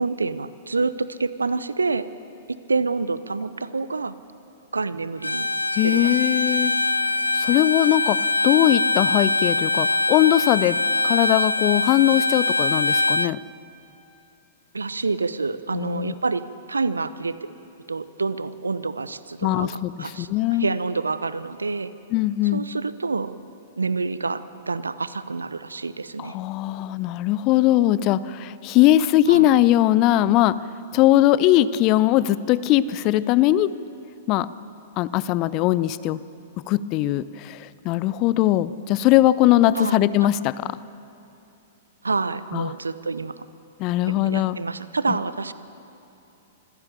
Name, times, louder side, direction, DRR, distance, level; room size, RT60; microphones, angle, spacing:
voice 1, 0.0-2.1 2.5-4.2 4.7-5.5 5.8-6.2 6.5-6.7 14.7-16.4 16.7-17.4 17.9-20.3 20.6-21.9 22.5-23.4 23.8-26.4 29.3-29.5 39.7-40.1 42.0-43.5 44.0-45.5, right 4 dB, 80° right, 15 dB, 0.7 m, -27 dB
Bowed string instrument, 5.2-13.3, left 2 dB, 85° left, 0.4 m, -23 dB
voice 2, 5.8-6.7 7.3-8.2 8.4-10.8 11.0-13.4 15.7-16.1 19.4-20.7 22.1-22.6 26.2-30.6 30.9-33.7 34.3-34.5 35.0-36.2 36.7-40.7 42.5-42.7 43.8-44.6, left 14 dB, 35° left, 17 dB, 0.6 m, -20 dB
25.5 x 15.5 x 6.9 m, 2.8 s
figure-of-eight pair, 105°, 0 cm